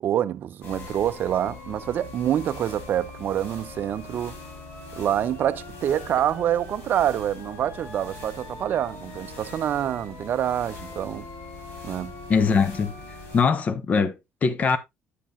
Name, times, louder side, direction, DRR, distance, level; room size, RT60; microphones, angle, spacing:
voice 1, 0.0-4.4 5.0-11.3 11.8-12.1, right 10 dB, 45° right, 0.5 m, -26 dB
sound 1, 0.6-13.4, left 2 dB, 65° left, 4.3 m, -41 dB
voice 2, 12.3-13.0 13.3-14.8, left 5 dB, 35° left, 0.8 m, -22 dB
8.3 x 7.5 x 2.5 m
cardioid pair, 145°, 5 cm